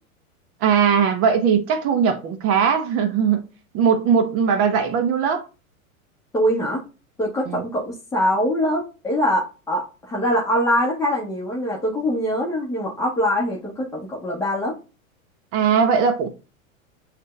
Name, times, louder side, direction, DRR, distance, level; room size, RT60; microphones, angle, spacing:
voice 1, 0.6-3.4 3.7-5.4 7.5-7.6 15.5-16.3, right 7 dB, 35° right, 0.8 m, -19 dB
voice 2, 6.3-6.8 7.2-14.8, equal, 5° left, 1.2 m, -23 dB
5.4 x 2.6 x 3.2 m
hypercardioid pair, 115°, 42 cm